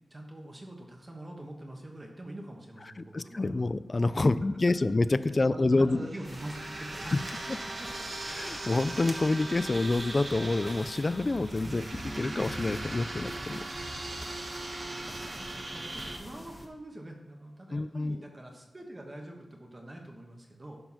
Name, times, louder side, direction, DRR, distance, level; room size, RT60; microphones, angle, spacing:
voice 1, 0.1-3.6 4.3-4.4 5.3-7.2 7.6-7.9 11.5-11.9 13.7-13.9 14.6-20.8, right 1 dB, 25° right, 2 dB, 1.4 m, -45 dB
voice 2, 3.0-6.1 7.1-7.2 7.5-7.6 8.3-11.8 12.2-13.6 14.6-15.0 17.7-18.2, left 2 dB, 30° left, 15 dB, 0.3 m, -27 dB
sound 1, 5.9-16.2, right 2 dB, 40° right, 1.1 m, -39 dB
sound 2, 6.2-16.7, left 1 dB, 10° left, 1.2 m, -46 dB
11.5 x 4.6 x 5.7 m, 1.1 s
wide cardioid pair, 135°, 0 cm